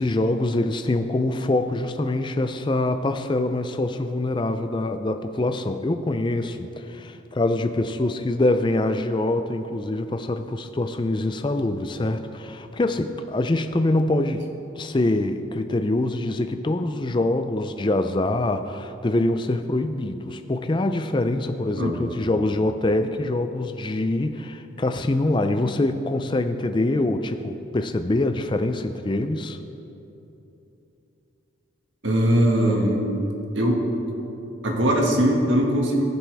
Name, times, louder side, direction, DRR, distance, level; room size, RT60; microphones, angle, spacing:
voice 1, 0.0-14.5 14.8-29.6, left 2 dB, 25° left, 8 dB, 0.4 m, -24 dB
voice 2, 21.8-22.1 32.0-33.0 33.5-33.8 34.6-36.0, right 1 dB, 65° right, 0 dB, 1.7 m, -20 dB
20.0 x 7.3 x 3.4 m, 2.9 s
head